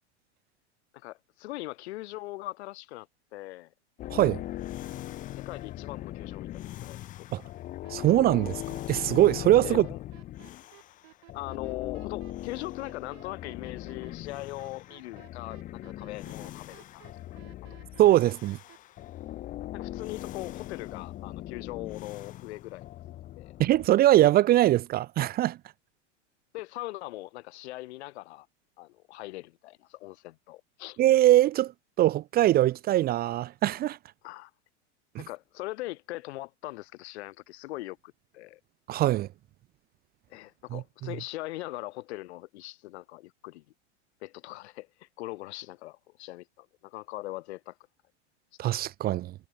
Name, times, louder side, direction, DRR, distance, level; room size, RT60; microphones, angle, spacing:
voice 1, 0.9-3.1 3.3-3.7 5.3-7.3 9.6-10.0 11.3-17.1 17.7-17.8 18.2-18.3 19.7-22.8 23.4-23.6 26.5-28.5 28.8-31.0 34.2-34.5 35.2-38.6 40.3-43.6 44.2-47.8, left 18 dB, 65° left, 1.5 m, -41 dB
sound 1, 4.0-11.0 11.3-23.9, left 14 dB, 25° left, 0.5 m, -40 dB
voice 2, 4.1-4.4 7.3-7.4 7.9-8.5 8.9-9.9 18.0-18.6 23.6-25.6 31.0-31.7 32.0-34.0 35.1-35.2 38.9-39.3 40.7-40.8 48.6-49.3, right 14 dB, 25° right, 0.5 m, -22 dB
sound 2, 7.8-18.8, right 25 dB, 60° right, 4.5 m, -55 dB
hypercardioid pair, 120°, 35 cm